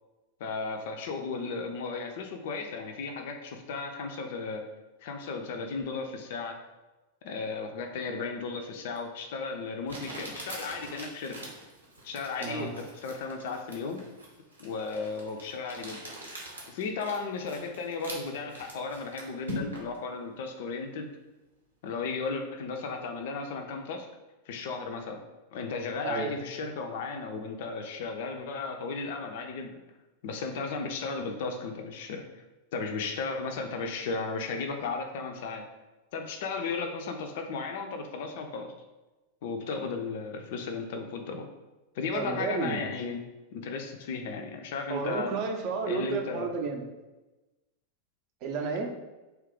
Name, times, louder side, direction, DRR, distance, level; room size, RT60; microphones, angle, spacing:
voice 1, 0.4-4.7 5.0-6.6 7.2-11.4 12.0-14.0 14.6-16.0 16.7-21.1 21.8-24.1 24.5-25.2 25.5-29.7 30.2-32.4 32.7-35.6 36.1-38.7 39.4-41.5 41.9-43.2 43.5-45.3 45.9-46.5, left 4 dB, 50° left, 4 dB, 0.4 m, -35 dB
Crumpling crinkling, 9.0-9.1 9.9-20.0, equal, 80° right, 0.7 m, -43 dB
voice 2, 26.0-26.3 42.1-42.9 44.9-46.8 48.4-48.9, right 4 dB, 40° right, 3 dB, 0.5 m, -31 dB
2.8 x 2.4 x 3.6 m, 1.1 s
figure-of-eight pair, 90°, 0 cm